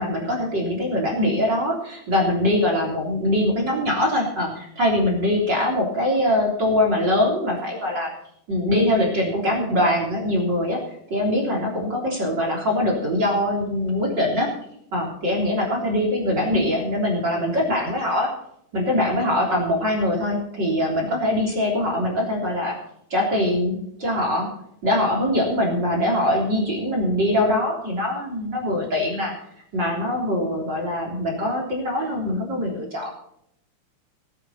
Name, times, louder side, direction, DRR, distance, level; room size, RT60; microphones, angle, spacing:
voice 1, 0.0-8.1 8.5-10.8 11.1-14.5 14.9-18.3 18.7-22.8 23.1-24.5 24.8-29.3 29.7-33.1, left 1 dB, 30° right, -2 dB, 3.7 m, -23 dB
19.0 x 9.3 x 4.3 m, 0.74 s
omnidirectional pair, 4.2 m